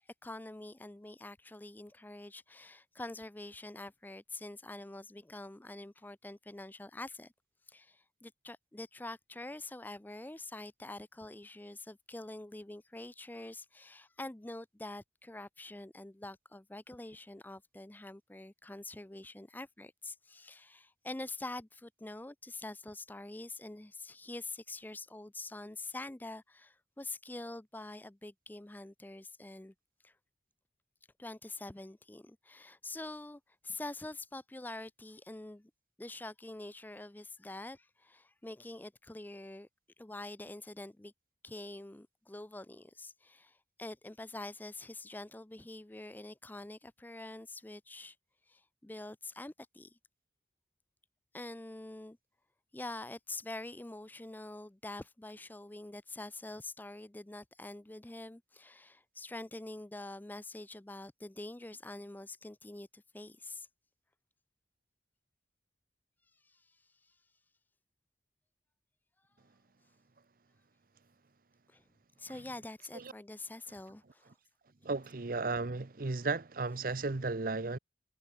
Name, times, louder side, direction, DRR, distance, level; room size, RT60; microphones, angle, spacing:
voice 1, 0.2-7.3 7.7-29.7 30.0-30.1 31.2-35.7 36.0-39.7 40.0-41.1 41.4-48.2 48.5-50.0 51.3-52.2 52.7-63.7 66.4-66.6 71.7-71.8 72.2-74.3, left 2 dB, 10° left, 0.5 m, -46 dB
voice 2, 74.8-77.8, right 3 dB, 50° right, 0.8 m, -34 dB
head